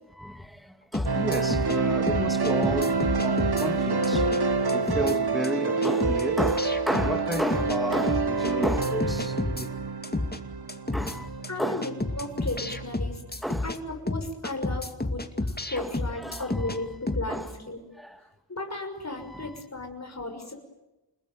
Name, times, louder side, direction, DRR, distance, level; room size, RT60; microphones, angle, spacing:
voice 1, 0.1-4.3 4.7-9.7 10.9-11.9 13.4-13.7 15.8-16.9 17.3-17.5 18.0-18.2 19.2-19.6, equal, ahead, 2.2 m, -32 dB
sound 1, 0.9-1.8 2.1-3.7 4.0-4.4 4.7-5.2 5.4-5.5 5.8-7.8 8.1-9.7 10.0-10.4 10.7-11.2 11.4-11.5 11.8-13.8 14.1-16.8 17.1-17.3, left 2 dB, 20° left, 2.4 m, -30 dB
sound 2, 1.1-13.2, right 4 dB, 60° right, 1.6 m, -27 dB
voice 2, 11.5-13.2 13.6-17.8 18.5-20.5, left 2 dB, 40° left, 6.4 m, -35 dB
29.5 x 20.5 x 9.4 m
wide cardioid pair, 85°, 43 cm